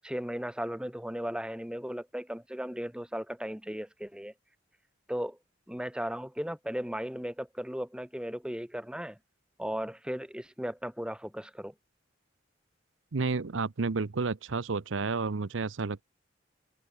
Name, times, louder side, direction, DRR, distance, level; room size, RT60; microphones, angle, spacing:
voice 1, 0.0-4.3 5.1-5.4 5.7-9.2 9.6-11.7, equal, 5° right, 2.0 m, -36 dB
voice 2, 13.1-16.0, right 4 dB, 80° right, 0.7 m, -31 dB
open air
head